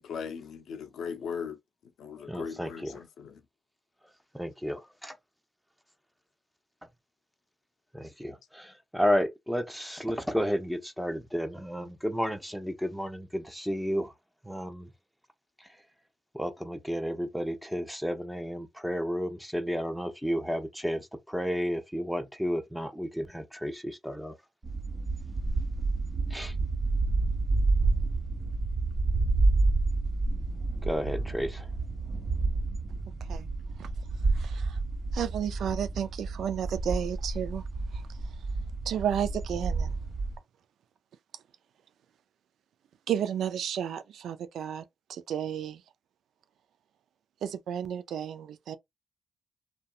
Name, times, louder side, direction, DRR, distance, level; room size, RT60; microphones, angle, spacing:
voice 1, 0.0-1.6 2.0-3.4, left 6 dB, 80° left, 0.4 m, -38 dB
voice 2, 2.2-3.0 4.3-5.2 7.9-14.1 14.4-14.9 15.6-15.8 16.3-24.4 26.3-26.6 30.8-31.7, equal, ahead, 0.8 m, -32 dB
sound 1, 24.6-40.4, right 3 dB, 40° right, 1.2 m, -29 dB
voice 3, 34.4-34.8 35.1-37.6 38.9-39.9 43.1-44.8 45.1-45.8 47.4-48.8, right 9 dB, 80° right, 0.3 m, -32 dB
2.6 x 2.2 x 2.3 m
supercardioid pair, 45°, 0 cm